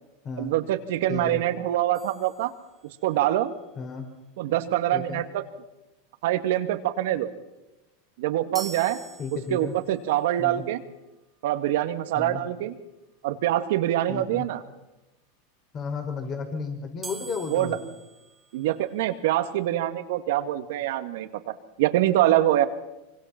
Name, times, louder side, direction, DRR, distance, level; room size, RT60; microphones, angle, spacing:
voice 1, 0.4-2.5 3.0-3.5 4.4-5.4 6.2-7.3 8.2-9.0 9.3-10.8 11.4-12.8 13.2-14.6 17.5-17.8 18.5-21.5 21.8-22.7, right 13 dB, 70° right, 9 dB, 2.0 m, -25 dB
voice 2, 1.1-1.4 3.8-4.1 4.9-5.2 9.2-9.7 10.4-10.6 12.2-12.4 14.1-14.5 15.7-17.8, left 5 dB, 35° left, 5 dB, 5.3 m, -33 dB
sound 1, 1.9-3.2 8.5-10.0 17.0-19.2, right 4 dB, 15° right, 2.2 m, -44 dB
25.0 x 24.5 x 6.0 m, 1.0 s
supercardioid pair, 120°, 0 cm